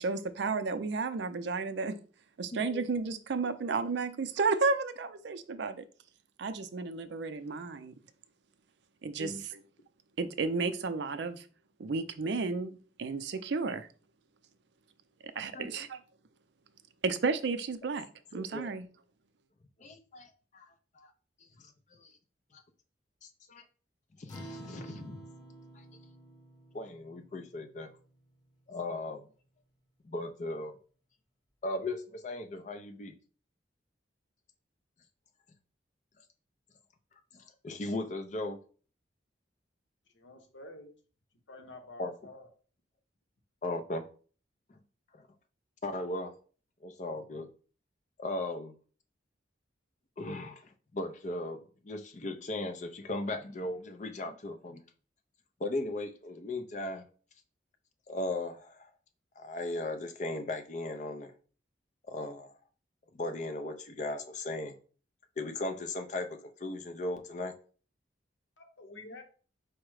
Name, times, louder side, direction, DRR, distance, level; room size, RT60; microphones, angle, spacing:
voice 1, 0.0-2.0 2.4-5.8 6.4-7.9 9.0-9.6 10.2-11.5 11.8-13.9 15.2-16.0 17.0-18.1 18.3-18.9, right 4 dB, 65° right, 0.4 m, -32 dB
voice 2, 2.5-2.8 9.2-9.4 15.5-15.9 18.3-18.7 19.8-21.1 21.6-22.1 22.5-22.6 23.2-23.7 24.2-25.2 25.7-25.8 26.7-27.9 28.7-29.3 30.0-30.8 31.6-33.1 37.3-38.6 42.0-42.1 43.6-44.1 44.7-44.8 45.1-45.3 45.8-46.3 46.8-47.5 48.2-48.7 50.2-54.8 55.6-57.1 58.1-58.9 59.4-61.3 62.1-62.5 63.1-64.8 65.4-67.5, left 2 dB, 40° left, 0.5 m, -37 dB
Acoustic guitar, 24.3-29.0, right 1 dB, 20° left, 0.9 m, -50 dB
voice 3, 40.1-40.9 41.5-42.5 68.6-69.2, left 2 dB, 80° left, 0.9 m, -49 dB
4.7 x 2.1 x 4.6 m
head